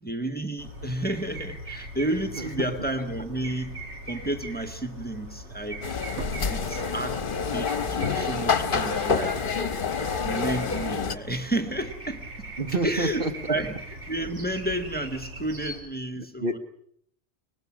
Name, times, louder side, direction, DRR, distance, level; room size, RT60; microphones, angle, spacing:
voice 1, 0.0-3.8 4.1-5.8 6.5-7.2 7.5-9.4 10.2-12.3 12.8-13.7 14.1-16.6, right 1 dB, 10° left, 6 dB, 1.5 m, -31 dB
sound 1, 0.6-15.8, right 1 dB, 75° right, 4.0 m, -40 dB
sound 2, 5.8-11.2, left 5 dB, 50° left, 1.2 m, -27 dB
sound 3, 6.1-7.6 8.0-8.1, right 2 dB, 90° right, 1.6 m, -40 dB
voice 2, 12.6-13.3 16.1-16.6, right 2 dB, 50° right, 7 dB, 1.4 m, -29 dB
24.5 x 19.5 x 6.2 m, 0.66 s
omnidirectional pair, 1.2 m